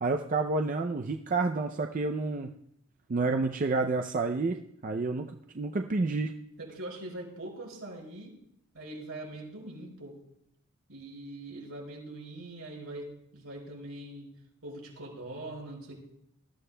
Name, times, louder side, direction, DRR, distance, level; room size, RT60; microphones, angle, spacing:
voice 1, 0.0-2.5 3.1-5.3 5.5-6.3, right 3 dB, 40° right, 4 dB, 0.4 m, -29 dB
voice 2, 6.6-8.4 8.7-10.2 10.9-14.3 14.6-15.9, right 1 dB, 75° right, -3 dB, 4.9 m, -42 dB
19.0 x 13.0 x 2.2 m, 0.74 s
head